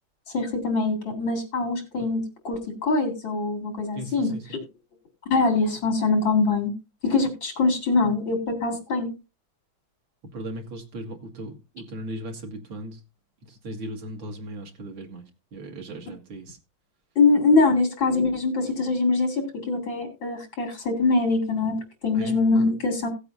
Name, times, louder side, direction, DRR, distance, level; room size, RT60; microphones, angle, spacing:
voice 1, 0.3-4.3 5.3-6.7 7.0-9.1 17.2-23.1, left 3 dB, 75° left, 3 dB, 4.0 m, -23 dB
voice 2, 4.0-4.4 10.3-13.0 13.5-15.2 15.5-16.6 22.1-22.4, right 1 dB, 85° right, 2 dB, 2.7 m, -37 dB
17.0 x 8.2 x 2.7 m, 0.28 s
omnidirectional pair, 2.1 m